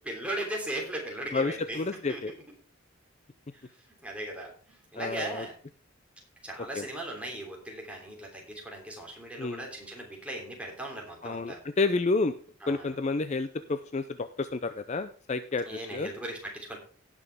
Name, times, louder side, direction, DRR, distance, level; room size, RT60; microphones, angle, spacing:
voice 1, 0.0-2.4 4.0-5.5 6.4-11.6 12.6-12.9 15.6-16.8, right 1 dB, 5° right, -1 dB, 3.2 m, -38 dB
voice 2, 1.3-2.3 5.0-5.5 6.8-6.9 9.4-9.7 11.2-12.3 12.7-16.1, left 3 dB, 35° left, 11 dB, 0.5 m, -30 dB
17.5 x 6.2 x 3.6 m, 0.42 s
head